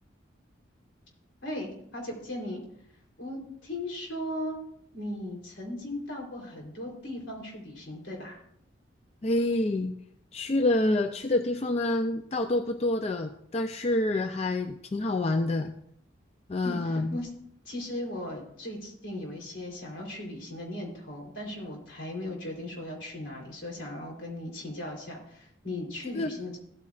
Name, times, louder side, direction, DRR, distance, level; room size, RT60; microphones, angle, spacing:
voice 1, 1.4-2.6 3.2-4.6 4.9-8.4 16.6-17.3 17.6-26.6, left 1 dB, 70° left, -1 dB, 3.3 m, -37 dB
voice 2, 9.2-9.9 10.3-15.7 16.5-17.2 26.1-26.3, left 2 dB, 30° left, 7 dB, 0.4 m, -27 dB
15.5 x 8.6 x 2.4 m, 0.71 s
head